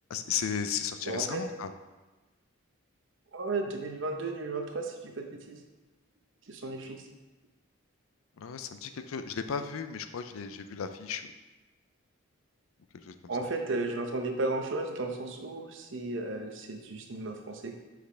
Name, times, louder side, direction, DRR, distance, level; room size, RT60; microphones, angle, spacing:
voice 1, 0.1-1.7 8.4-11.3 13.1-13.2, left 7 dB, 90° left, 9 dB, 0.5 m, -35 dB
voice 2, 1.0-1.4 3.3-5.6 6.5-7.0 13.3-17.7, right 2 dB, 65° right, 4 dB, 0.7 m, -34 dB
6.4 x 5.1 x 3.3 m, 1.2 s
head